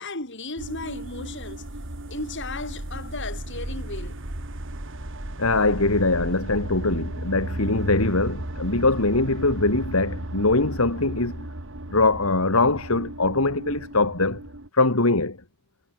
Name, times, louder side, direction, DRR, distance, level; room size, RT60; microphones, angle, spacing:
voice 1, 0.0-1.6 2.1-4.2, left 3 dB, 60° left, 6.7 m, -35 dB
sound 1, 0.6-14.7, right 1 dB, 65° right, 2.6 m, -35 dB
voice 2, 5.4-11.5 11.9-14.4 14.7-15.4, left 2 dB, 75° left, 2.5 m, -22 dB
head